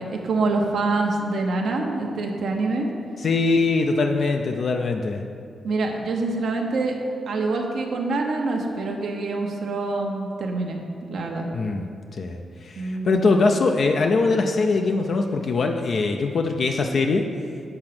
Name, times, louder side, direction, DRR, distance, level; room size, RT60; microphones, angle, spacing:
voice 1, 0.0-2.9 5.6-7.0 7.3-10.8 11.1-11.5 12.8-13.3, right 3 dB, 75° right, 1 dB, 0.9 m, -25 dB
voice 2, 3.2-5.2 11.5-11.9 12.2-17.2, left 3 dB, 60° left, 4 dB, 0.5 m, -22 dB
7.8 x 3.8 x 5.9 m, 2.3 s
cardioid pair, 85°, 0 cm